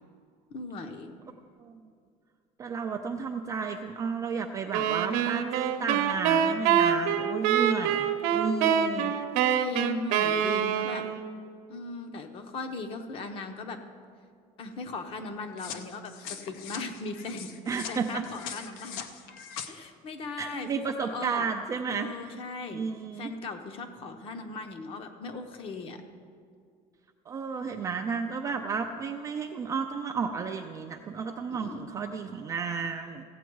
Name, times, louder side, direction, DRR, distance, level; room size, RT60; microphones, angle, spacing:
voice 1, 0.5-1.1 9.5-11.1 11.7-13.8 14.6-17.5 17.9-19.0 19.7-21.5 21.9-22.8 23.1-26.0 27.7-28.2 31.5-31.9, left 3 dB, 35° left, 7 dB, 0.9 m, -38 dB
voice 2, 2.6-9.1 17.7-18.2 20.4-22.1 22.7-23.3 27.3-33.2, right 5 dB, 20° right, 3 dB, 0.4 m, -32 dB
sound 1, 4.7-11.3, right 8 dB, 75° right, 0.8 m, -25 dB
sound 2, 15.6-19.7, left 8 dB, 70° left, 0.8 m, -41 dB
15.5 x 8.0 x 4.6 m, 2.2 s
cardioid pair, 180°, 15 cm